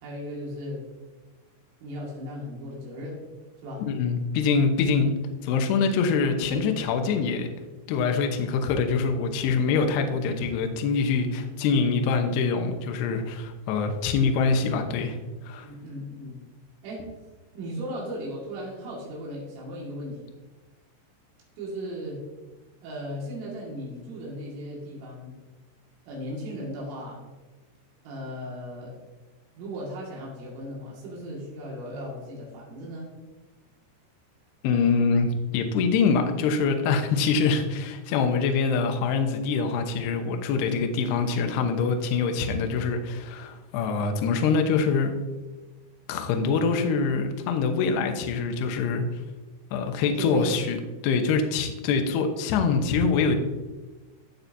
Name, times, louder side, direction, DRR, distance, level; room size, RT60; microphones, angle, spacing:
voice 1, 0.0-0.8 1.8-3.2 3.6-3.9 15.6-16.4 16.8-17.1 17.5-20.3 21.6-22.2 22.8-25.3 26.1-27.3 28.0-29.0 29.6-33.1 50.2-50.6, equal, 80° right, -4 dB, 4.6 m, -36 dB
voice 2, 3.9-5.1 5.4-7.5 7.9-15.2 15.4-15.7 34.6-45.1 46.1-49.0 49.7-50.8 51.0-53.4, left 5 dB, 75° left, 5 dB, 2.6 m, -24 dB
13.5 x 8.7 x 2.7 m, 1.2 s
omnidirectional pair, 5.8 m